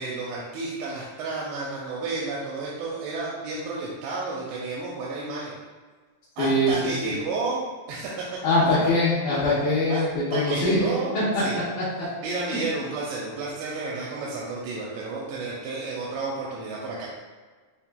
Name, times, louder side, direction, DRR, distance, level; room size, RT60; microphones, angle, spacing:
voice 1, 0.0-5.5 6.4-8.2 9.9-10.0 10.3-11.6 12.2-17.1, right 3 dB, 90° right, -5 dB, 2.7 m, -31 dB
voice 2, 6.4-6.9 8.4-10.8 11.1-11.2, left 1 dB, 70° left, -11 dB, 2.0 m, -22 dB
6.9 x 2.4 x 2.2 m, 1.4 s
omnidirectional pair, 4.7 m